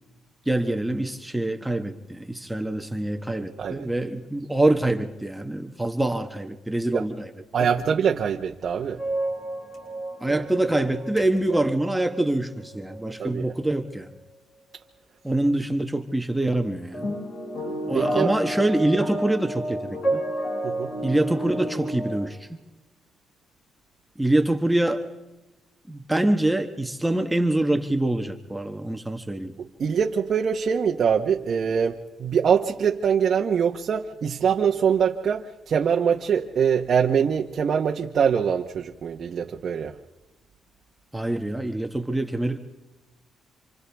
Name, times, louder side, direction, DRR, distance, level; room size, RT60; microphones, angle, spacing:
voice 1, 0.5-7.3 10.2-14.1 15.2-17.1 17.9-20.2 21.0-22.6 24.2-25.0 25.9-29.5 41.1-42.6, right 1 dB, 5° right, 1.3 m, -25 dB
voice 2, 7.5-9.0 10.3-10.4 11.5-11.6 13.2-13.5 17.9-18.3 20.6-20.9 29.6-39.9, right 7 dB, 55° right, 1.1 m, -23 dB
sound 1, 9.0-13.3 13.8-14.1 16.9-22.3, right 1 dB, 65° left, 7.2 m, -31 dB
29.5 x 26.5 x 3.5 m
cardioid pair, 90°, 0 cm